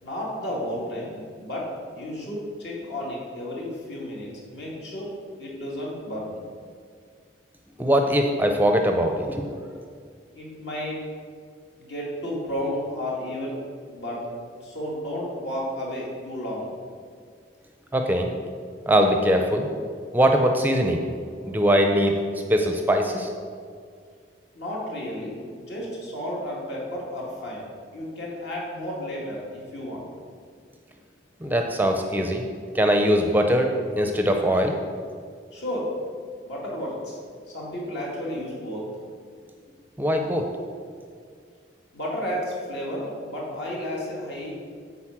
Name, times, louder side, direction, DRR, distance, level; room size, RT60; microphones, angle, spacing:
voice 1, 0.0-5.1 5.4-6.4 10.3-11.0 11.8-13.6 13.9-14.3 14.6-16.7 24.5-27.7 27.9-30.1 31.4-31.5 35.5-35.9 36.4-37.2 37.5-38.9 41.9-44.5, left 1 dB, 65° left, -4 dB, 2.5 m, -32 dB
voice 2, 7.8-9.3 17.9-18.3 18.9-19.7 20.1-21.0 21.4-22.1 22.5-23.3 31.4-32.4 32.7-34.8 40.0-40.5, equal, 10° right, 4 dB, 0.5 m, -21 dB
9.1 x 4.1 x 7.3 m, 2.1 s
head